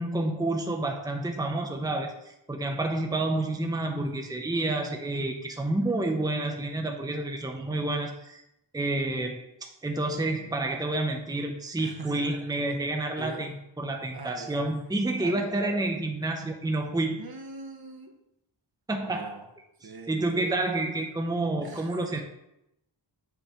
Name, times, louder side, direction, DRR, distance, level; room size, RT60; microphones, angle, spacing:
voice 1, 0.0-8.4 8.7-17.2 18.9-19.5 19.8-22.2, right 2 dB, 10° right, 3 dB, 0.8 m, -29 dB
voice 2, 11.8-12.2 13.2-13.5 14.1-14.6 15.2-15.8 17.2-18.1 19.0-19.4 19.8-20.1 21.6-22.2, right 3 dB, 55° right, 3 dB, 1.1 m, -42 dB
8.1 x 3.3 x 5.7 m, 0.83 s
wide cardioid pair, 75°, 45 cm